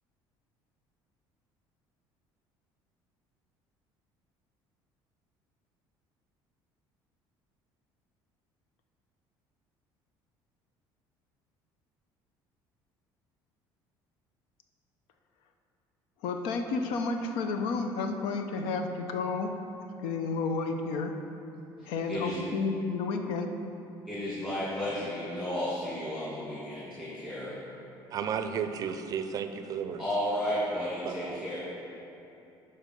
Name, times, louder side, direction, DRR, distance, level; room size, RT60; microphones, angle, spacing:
voice 1, 16.2-19.5 20.0-21.1 21.9-23.5, left 4 dB, 85° left, 6 dB, 0.7 m, -31 dB
voice 2, 21.8-22.4 24.1-27.5 30.0-31.6, left 1 dB, 10° left, -10 dB, 2.1 m, -33 dB
voice 3, 28.1-30.0 31.0-31.4, right 7 dB, 40° right, 8 dB, 0.4 m, -33 dB
11.5 x 4.3 x 5.3 m, 2.9 s
cardioid pair, 145°, 9 cm